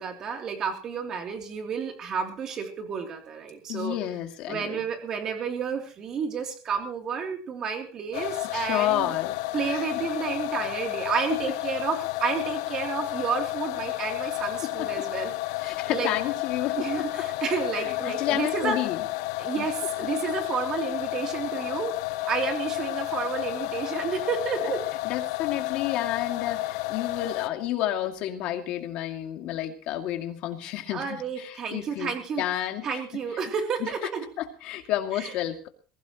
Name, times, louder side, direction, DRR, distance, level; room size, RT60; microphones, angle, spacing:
voice 1, 0.0-4.0 4.5-9.1 9.5-15.3 15.6-16.1 16.8-18.8 19.4-21.9 22.3-24.8 30.9-32.4 32.8-34.3 35.2-35.3, right 6 dB, 30° right, 3 dB, 3.0 m, -31 dB
voice 2, 3.7-4.8 8.5-9.3 9.6-9.9 14.6-15.1 15.6-16.9 17.2-17.3 17.7-19.0 19.6-19.7 20.0-20.1 25.0-32.1 32.4-33.4 33.8-33.9 34.4-35.7, left 12 dB, 50° left, 5 dB, 2.3 m, -31 dB
sound 1, 8.1-27.5, left 19 dB, 85° left, 0.8 m, -31 dB
21.5 x 16.5 x 3.0 m, 0.38 s
cardioid pair, 170°, 2 cm